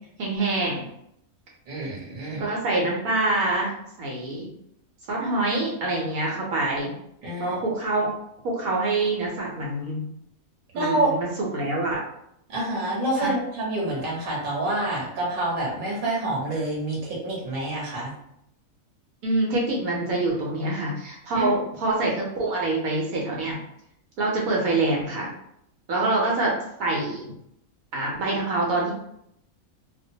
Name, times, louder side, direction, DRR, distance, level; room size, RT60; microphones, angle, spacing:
voice 1, 0.2-0.9 2.4-4.5 5.1-6.9 7.4-8.1 8.4-10.0 10.7-11.3 11.5-12.0 13.2-13.3 19.2-23.6 24.2-25.3 25.9-26.5 26.8-27.3 27.9-28.9, right 2 dB, 75° right, -2 dB, 1.1 m, -25 dB
voice 2, 1.7-2.5 7.2-7.6 10.7-11.1 12.5-18.1 21.3-21.5, right 1 dB, 40° right, -5 dB, 0.9 m, -27 dB
2.4 x 2.1 x 2.7 m, 0.75 s
omnidirectional pair, 1.5 m